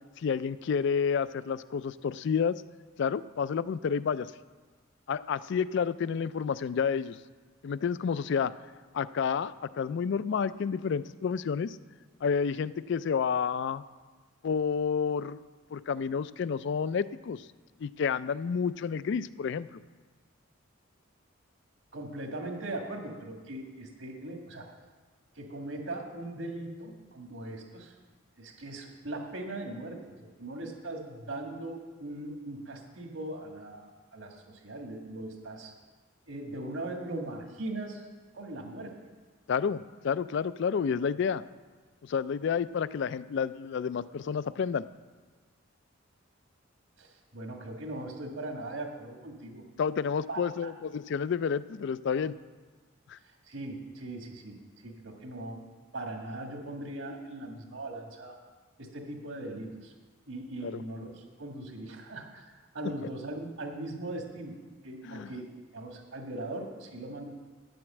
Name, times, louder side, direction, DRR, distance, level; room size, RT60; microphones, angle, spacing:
voice 1, 0.2-2.6 3.0-4.3 5.1-7.2 7.6-8.5 8.9-11.8 12.2-13.8 14.4-15.4 15.7-17.5 17.8-19.8 39.5-41.4 42.0-44.9 49.8-52.3 53.1-53.2 60.6-60.8 65.0-65.3, left 6 dB, 60° left, 17 dB, 0.3 m, -30 dB
voice 2, 21.9-24.7 25.4-28.0 28.4-30.1 30.4-33.9 34.1-35.7 36.3-38.1 38.3-39.0 47.0-49.6 50.3-50.7 53.2-55.7 55.9-58.4 58.8-59.9 60.3-64.6 64.8-67.3, right 2 dB, 70° right, 2 dB, 1.7 m, -40 dB
9.8 x 7.8 x 7.3 m, 1.4 s
head